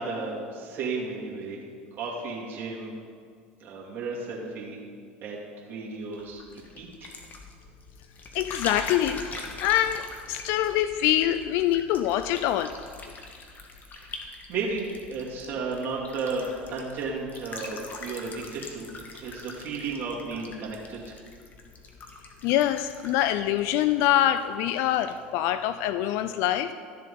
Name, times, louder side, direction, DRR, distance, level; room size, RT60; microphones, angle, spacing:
voice 1, 0.0-1.6 2.0-2.9 3.6-4.8 5.2-5.4 5.7-6.4 6.8-7.1 14.0-14.2 14.5-18.9 19.2-21.2, right 4 dB, 45° right, -5 dB, 2.3 m, -33 dB
sound 1, 6.1-24.5 24.8-25.2, left 3 dB, 35° left, 1.6 m, -43 dB
voice 2, 8.3-9.3 9.6-12.8 22.4-26.7, left 12 dB, 65° left, 12 dB, 0.4 m, -25 dB
13.5 x 7.4 x 3.8 m, 2.1 s
hypercardioid pair, 85°, 5 cm